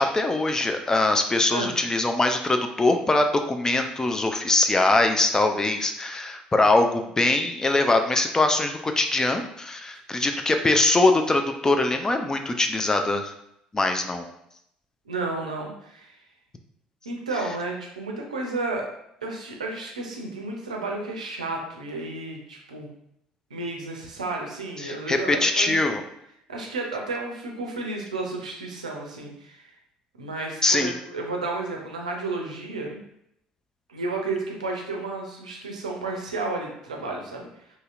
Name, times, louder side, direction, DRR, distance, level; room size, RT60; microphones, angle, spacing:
voice 1, 0.0-13.3 13.7-14.3 24.8-26.0 30.6-30.9, left 2 dB, 15° left, 5 dB, 0.3 m, -22 dB
voice 2, 15.1-16.2 17.1-18.9 19.2-22.9 23.5-25.7 26.5-29.7 30.2-33.0 33.9-37.5, right 3 dB, 80° right, 0 dB, 0.5 m, -32 dB
2.8 x 2.7 x 2.4 m, 0.75 s
figure-of-eight pair, 55°, 4 cm